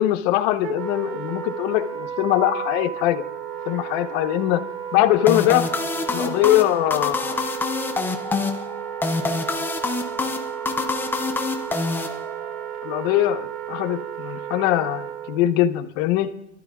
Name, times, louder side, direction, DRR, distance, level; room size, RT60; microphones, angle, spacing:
voice 1, 0.0-3.2 3.7-4.6 4.9-5.7 6.1-7.4 12.8-16.3, left 14 dB, 50° left, 8 dB, 1.0 m, -21 dB
Wind instrument woodwind instrument, 0.6-15.5, right 9 dB, 35° right, 0.9 m, -33 dB
sound 1, 5.3-12.6, left 3 dB, 5° left, 0.4 m, -27 dB
25.5 x 12.5 x 2.3 m, 0.80 s
supercardioid pair, 140°, 35 cm